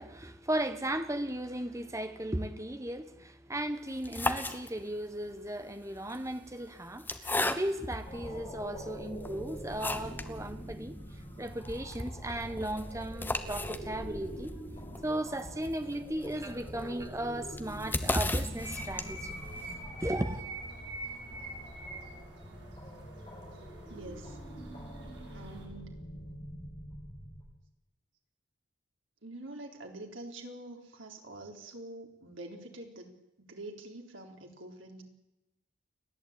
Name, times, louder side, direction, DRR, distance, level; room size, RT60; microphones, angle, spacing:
voice 1, 0.0-11.0 11.4-14.5 15.0-19.6 20.0-20.4, right 1 dB, 15° right, 1.4 m, -36 dB
sound 1, 3.9-5.1 6.0-8.0 8.6-8.7 9.2-10.4 10.7-10.8 11.0-11.1 11.5-19.4, left 2 dB, 10° left, 1.1 m, -36 dB
sound 2, 8.0-27.4, equal, 25° left, 6.2 m, -45 dB
sound 3, 18.5-25.7, right 2 dB, 60° right, 6.1 m, -45 dB
voice 2, 23.9-24.4 25.3-25.9 29.2-35.0, right 2 dB, 90° right, 3.9 m, -46 dB
29.5 x 11.5 x 8.9 m
head